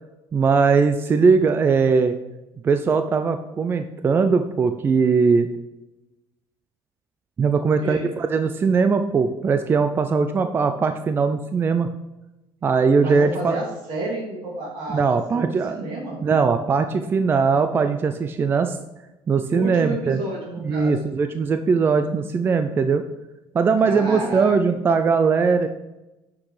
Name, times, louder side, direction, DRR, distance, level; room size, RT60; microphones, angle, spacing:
voice 1, 0.3-2.2 2.6-5.5 7.4-11.9 12.6-13.6 14.9-15.8 16.2-18.8 19.3-20.2 20.6-23.1 23.5-25.7, right 5 dB, 25° right, 8 dB, 0.4 m, -20 dB
voice 2, 7.6-8.1 13.0-16.2 19.5-21.1 23.8-24.8, right 2 dB, 70° right, -3 dB, 3.1 m, -31 dB
8.6 x 6.1 x 4.9 m, 1.0 s
cardioid pair, 145°, 9 cm